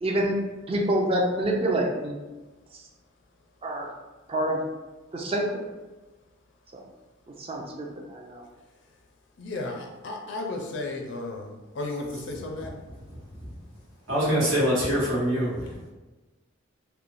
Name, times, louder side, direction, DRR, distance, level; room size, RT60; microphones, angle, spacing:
voice 1, 0.0-0.4 0.7-2.2 3.6-3.9 4.3-4.6 5.1-5.6 7.4-8.4, right 1 dB, 30° right, 0 dB, 0.4 m, -27 dB
voice 2, 9.4-12.7, left 2 dB, 65° left, 1 dB, 0.4 m, -34 dB
voice 3, 14.1-15.9, equal, 80° right, -7 dB, 1.0 m, -24 dB
3.0 x 2.1 x 2.5 m, 1.2 s
head